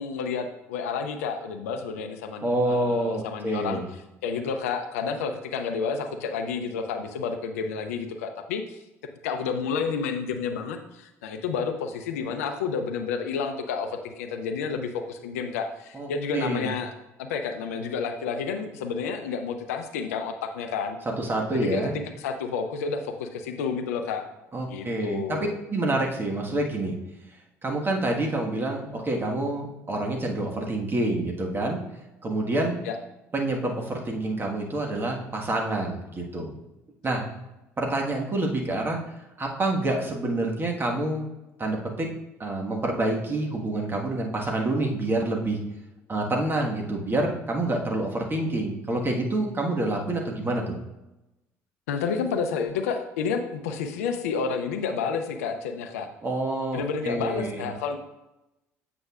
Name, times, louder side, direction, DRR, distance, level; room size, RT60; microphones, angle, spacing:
voice 1, 0.0-3.8 4.2-8.8 9.2-16.9 17.2-21.0 21.5-21.9 22.2-24.2 24.6-25.5 32.8-33.0 51.9-56.1 56.7-58.0, left 5 dB, 75° left, 7 dB, 0.5 m, -30 dB
voice 2, 2.4-3.8 15.9-16.7 21.2-21.9 24.5-25.4 25.7-26.9 27.6-31.8 32.2-32.8 33.3-36.5 37.0-37.2 37.8-39.0 39.4-41.3 41.6-42.1 42.4-45.6 46.1-50.7 56.2-57.7, right 2 dB, 25° right, 0 dB, 1.4 m, -27 dB
7.8 x 5.9 x 2.4 m, 0.96 s
hypercardioid pair, 60°, 8 cm